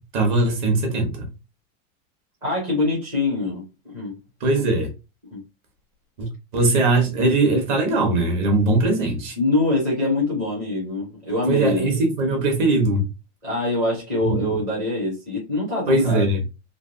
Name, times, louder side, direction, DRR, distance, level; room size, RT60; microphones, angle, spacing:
voice 1, 0.1-1.3 4.4-4.9 6.2-9.3 11.5-13.1 14.3-14.5 15.9-16.4, right 2 dB, 35° right, 0.9 m, -20 dB
voice 2, 2.4-4.1 5.3-5.4 8.6-8.8 9.4-12.1 13.4-16.3, left 2 dB, 10° right, 0.4 m, -24 dB
3.2 x 2.7 x 2.6 m
supercardioid pair, 175°, 43 cm